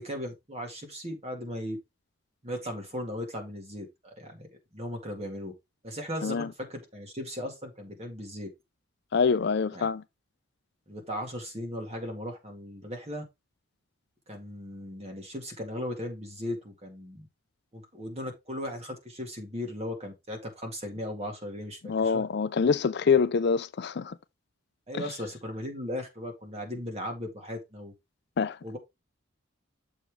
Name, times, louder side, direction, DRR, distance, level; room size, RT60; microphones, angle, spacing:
voice 1, 0.0-1.8 2.4-4.5 4.7-5.5 5.8-8.5 9.7-9.9 10.9-13.2 14.3-17.3 17.7-22.2 24.9-27.9 28.6-28.8, left 1 dB, 30° right, 2.0 m, -37 dB
voice 2, 9.1-10.0 21.9-24.2 24.9-25.0 28.4-28.6, left 5 dB, 55° left, 0.4 m, -25 dB
7.2 x 5.0 x 3.5 m
head